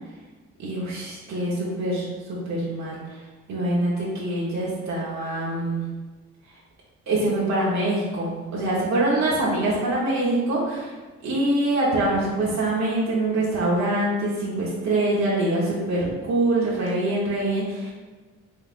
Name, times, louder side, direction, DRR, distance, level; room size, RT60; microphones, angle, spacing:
voice 1, 0.6-3.2 3.5-5.8 7.1-11.0 11.2-17.9, right 1 dB, 65° right, -6 dB, 1.2 m, -24 dB
5.6 x 3.3 x 2.5 m, 1.3 s
cardioid pair, 90°, 30 cm